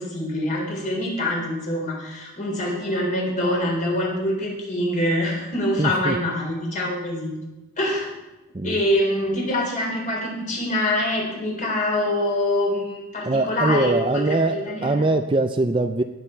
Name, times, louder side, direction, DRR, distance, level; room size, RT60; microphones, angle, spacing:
voice 1, 0.0-7.3 7.8-8.1 8.6-15.0, left 1 dB, 40° left, -2 dB, 4.2 m, -25 dB
voice 2, 5.8-6.2 8.5-8.8 13.2-16.0, right 2 dB, 25° right, 8 dB, 0.4 m, -22 dB
18.5 x 8.1 x 4.6 m, 1.0 s
head